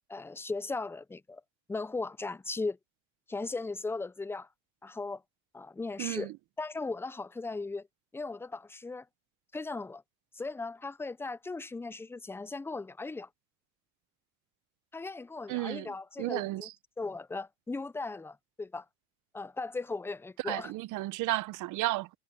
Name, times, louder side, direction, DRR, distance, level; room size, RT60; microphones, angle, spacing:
voice 1, 0.1-1.4 1.7-2.8 3.3-4.5 4.8-5.2 5.5-6.3 6.6-7.9 8.1-9.1 9.5-10.0 10.3-13.3 14.9-16.7 17.0-18.9 19.3-20.7, left 3 dB, 5° left, 0.5 m, -37 dB
voice 2, 6.0-6.3 15.5-15.9 16.2-16.7 20.4-22.1, right 18 dB, 60° right, 0.8 m, -33 dB
cardioid pair, 120°, 35 cm